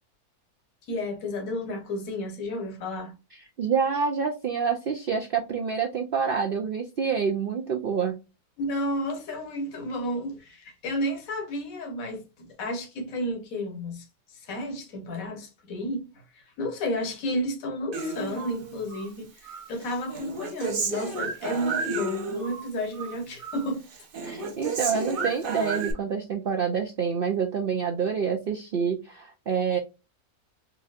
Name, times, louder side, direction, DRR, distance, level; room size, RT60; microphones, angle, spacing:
voice 1, 0.9-3.1 8.6-16.1 16.3-23.9, equal, 70° left, 1.5 m, -32 dB
voice 2, 3.3-8.2 24.2-29.8, right 6 dB, 65° right, 0.5 m, -27 dB
Human voice, 17.9-19.1 19.4-22.6 22.9-23.7 23.9-25.9, right 3 dB, 45° right, 0.8 m, -32 dB
4.3 x 2.7 x 2.4 m
omnidirectional pair, 1.6 m